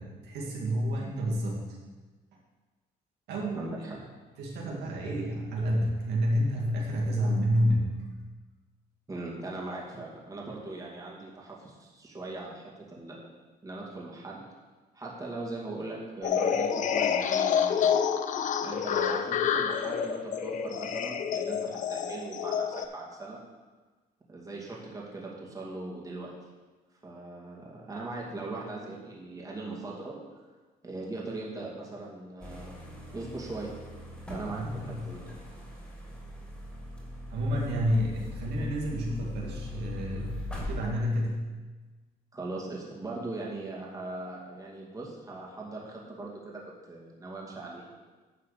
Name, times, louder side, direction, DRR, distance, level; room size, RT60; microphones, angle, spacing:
voice 1, 0.0-1.6 3.3-4.0 4.4-8.0 34.5-35.0 37.3-41.5, equal, 80° right, -2 dB, 2.1 m, -29 dB
voice 2, 3.5-3.9 9.1-13.3 13.6-14.4 14.9-18.1 18.6-23.4 24.3-26.3 27.0-30.2 30.8-32.8 33.1-33.7 34.3-35.2 42.3-47.9, right 2 dB, 20° right, -3 dB, 2.3 m, -40 dB
sound 1, 16.2-22.9, left 7 dB, 50° left, 0.6 m, -28 dB
sound 2, 32.4-40.8, left 2 dB, 5° left, 3.1 m, -41 dB
10.5 x 4.6 x 6.7 m, 1.3 s
cardioid pair, 110°, 17 cm